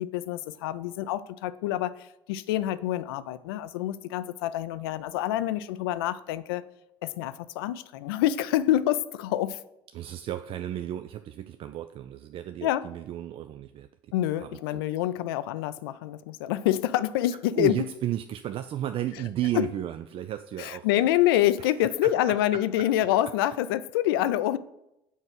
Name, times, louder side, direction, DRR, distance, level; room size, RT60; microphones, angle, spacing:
voice 1, 0.0-6.6 7.0-9.6 12.6-12.9 14.1-17.7 19.5-19.7 20.6-24.6, left 13 dB, 80° left, 0.4 m, -27 dB
voice 2, 9.9-14.8 17.5-20.9 21.6-21.7 22.0-22.1 22.5-22.6, right 12 dB, 50° right, 0.4 m, -33 dB
5.5 x 4.7 x 6.1 m
hypercardioid pair, 65°, 12 cm